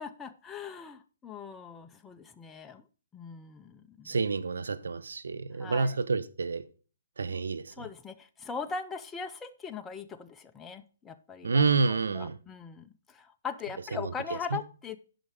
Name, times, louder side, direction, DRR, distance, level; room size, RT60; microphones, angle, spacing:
voice 1, 0.0-2.8 3.1-4.2 5.6-6.0 7.7-15.0, left 6 dB, 10° left, 0.6 m, -40 dB
voice 2, 4.1-6.6 7.2-7.7 11.4-12.4, right 4 dB, 85° right, 0.8 m, -28 dB
9.0 x 5.6 x 5.0 m
hypercardioid pair, 145°, 0 cm